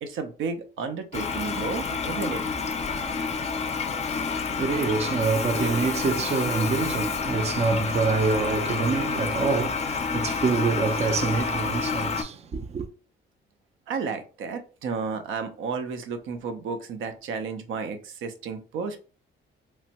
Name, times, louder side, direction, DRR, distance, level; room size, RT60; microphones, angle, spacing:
voice 1, 0.0-2.4 13.9-19.0, right 5 dB, 80° right, 0.6 m, -32 dB
Toilet flush, 1.1-12.2, left 5 dB, 35° left, 0.4 m, -29 dB
voice 2, 4.2-12.9, right 4 dB, 35° right, 0.4 m, -26 dB
3.1 x 2.1 x 2.8 m
cardioid pair, 90°, 20 cm